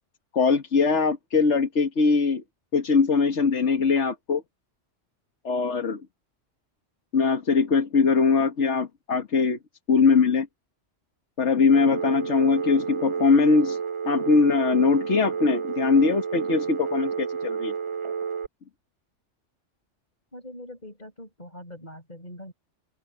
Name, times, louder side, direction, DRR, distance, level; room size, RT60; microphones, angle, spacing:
voice 1, 0.3-2.4 2.7-4.4 5.4-6.0 7.1-9.6 9.9-10.5 11.4-13.8 14.1-17.7, left 4 dB, 70° left, 1.8 m, -21 dB
Telephone, 11.7-18.5, right 6 dB, 30° right, 0.7 m, -30 dB
voice 2, 20.3-22.5, left 1 dB, 35° left, 6.5 m, -42 dB
open air
omnidirectional pair, 1.2 m